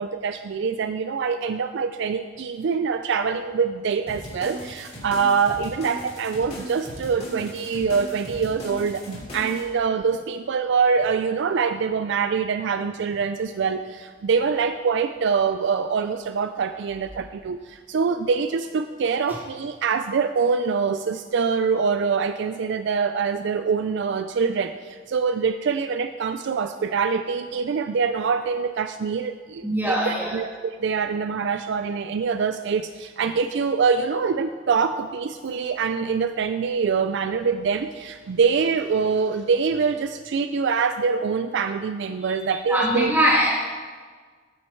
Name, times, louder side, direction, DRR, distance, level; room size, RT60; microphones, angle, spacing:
voice 1, 0.0-30.5 30.8-43.1, right 5 dB, 60° right, 9 dB, 0.3 m, -24 dB
sound 1, 4.1-9.6, equal, 30° left, 3.0 m, -38 dB
voice 2, 29.6-30.4 42.3-43.6, equal, 10° right, -6 dB, 2.6 m, -22 dB
14.5 x 6.3 x 4.5 m, 1.5 s
head